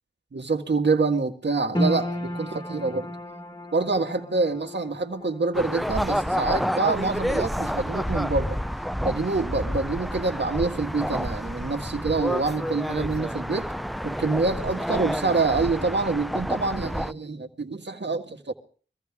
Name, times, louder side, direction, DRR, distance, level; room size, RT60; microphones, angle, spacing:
voice 1, 0.3-3.1 3.7-8.6 9.0-13.7 14.0-18.5, right 3 dB, 65° right, 1.9 m, -26 dB
sound 1, 1.7-14.2 14.4-15.4 15.8-15.9, equal, 25° left, 1.7 m, -37 dB
sound 2, 5.5-17.1, equal, ahead, 0.6 m, -29 dB
23.5 x 15.0 x 3.6 m
wide cardioid pair, 55°, 19 cm